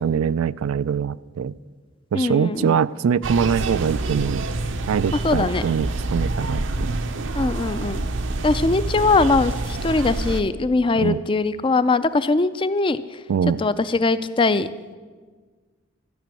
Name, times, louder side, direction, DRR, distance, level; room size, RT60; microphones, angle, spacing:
voice 1, 0.0-1.5 2.1-4.5 4.9-7.0 11.0-11.2 13.3-13.6, right 7 dB, 90° right, 18 dB, 0.3 m, -23 dB
voice 2, 2.1-2.8 5.1-5.6 7.3-8.0 8.4-13.2 13.6-14.7, left 3 dB, 25° left, 14 dB, 0.4 m, -21 dB
sound 1, 3.2-10.4, right 2 dB, 65° right, 0.7 m, -27 dB
13.5 x 6.1 x 9.0 m, 1.5 s
head